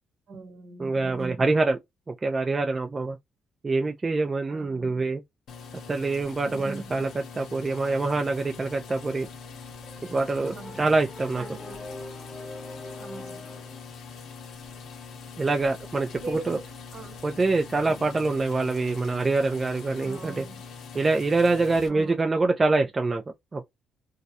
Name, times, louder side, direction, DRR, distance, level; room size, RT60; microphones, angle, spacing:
voice 1, 0.3-1.5 4.5-5.0 6.4-7.0 10.5-10.9 11.3-11.9 13.0-13.5 16.2-17.2 17.8-18.1 20.0-20.6 21.9-22.2, right 3 dB, 65° right, 1.1 m, -43 dB
voice 2, 0.8-1.8 2.1-3.2 3.6-5.2 5.9-9.3 10.1-11.4 15.4-16.6 17.2-20.4 20.9-23.2 23.5-23.6, right 3 dB, 30° right, 0.4 m, -25 dB
sound 1, 5.5-21.9, left 5 dB, 75° left, 0.6 m, -43 dB
sound 2, 9.8-13.9, left 2 dB, 20° left, 0.5 m, -43 dB
2.3 x 2.0 x 2.6 m
cardioid pair, 90°, 0 cm